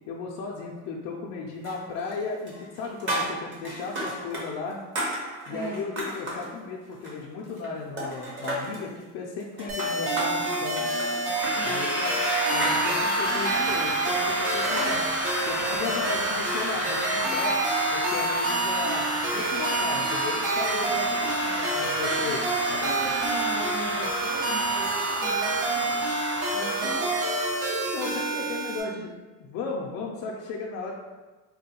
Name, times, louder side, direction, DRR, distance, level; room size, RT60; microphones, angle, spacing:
voice 1, 0.1-4.8 5.5-10.9 11.6-12.2 12.5-15.0 15.4-17.6 17.9-22.4 22.7-23.1 27.7-29.1 29.4-30.9, left 4 dB, 50° left, -3 dB, 0.4 m, -35 dB
sound 1, 1.6-2.2 2.5-4.5 4.7-6.5 6.9-7.7 8.0-8.9 9.4-14.9, right 1 dB, 35° right, 0.9 m, -33 dB
voice 2, 5.5-5.8 11.5-11.8 21.1-21.3 22.2-26.0 26.5-27.1, right 2 dB, 80° right, -7 dB, 1.2 m, -39 dB
sound 2, 9.7-28.8, right 3 dB, 60° right, 0.9 m, -28 dB
sound 3, 11.3-27.6, left 1 dB, 5° right, 0.6 m, -31 dB
3.7 x 2.2 x 2.8 m, 1.3 s
supercardioid pair, 125°, 35 cm